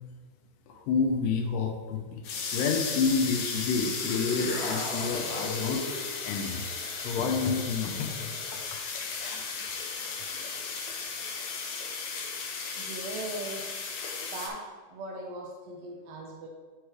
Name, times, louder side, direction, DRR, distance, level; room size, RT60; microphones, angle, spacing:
voice 1, 0.7-2.2 2.5-5.8 6.2-8.3 9.3-9.7 10.3-10.5, left 5 dB, 90° left, 2 dB, 2.3 m, -29 dB
sound 1, 2.2-14.5, left 5 dB, 70° left, 1.8 m, -35 dB
sound 2, 3.8-6.1, left 1 dB, 45° left, 1.7 m, -36 dB
voice 2, 12.7-13.9 14.2-14.6 14.9-16.5, right 2 dB, 70° right, -1 dB, 1.5 m, -39 dB
9.1 x 3.2 x 4.8 m, 1.4 s
omnidirectional pair, 3.7 m